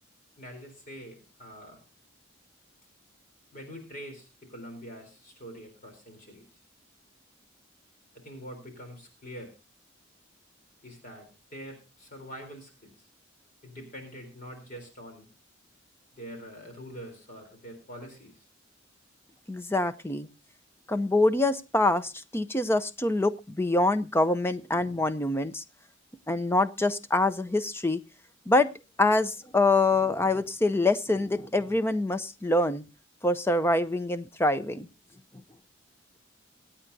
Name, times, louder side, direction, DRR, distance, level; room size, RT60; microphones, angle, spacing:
voice 1, 0.4-1.8 3.5-6.4 8.1-9.5 10.8-13.1 13.6-15.3 16.1-18.4, equal, 40° left, 4 dB, 3.7 m, -44 dB
voice 2, 19.5-20.3 20.9-25.6 26.3-28.0 28.5-28.7 29.0-32.8 33.2-34.9, left 2 dB, 10° left, 12 dB, 0.6 m, -25 dB
25.0 x 8.8 x 2.7 m, 0.29 s
head